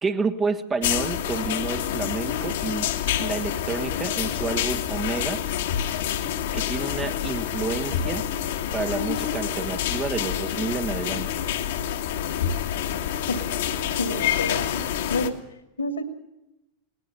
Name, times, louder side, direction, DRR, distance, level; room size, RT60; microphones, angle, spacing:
voice 1, 0.0-2.9 3.2-5.4 6.5-8.3 8.7-11.3, right 4 dB, 20° right, 9 dB, 1.4 m, -29 dB
sound 1, 0.8-15.3, left 10 dB, 55° left, 1.7 m, -27 dB
voice 2, 14.0-15.3 15.8-16.0, left 2 dB, 75° left, 9 dB, 2.6 m, -28 dB
20.0 x 19.5 x 6.9 m, 0.93 s
figure-of-eight pair, 90°, 0 cm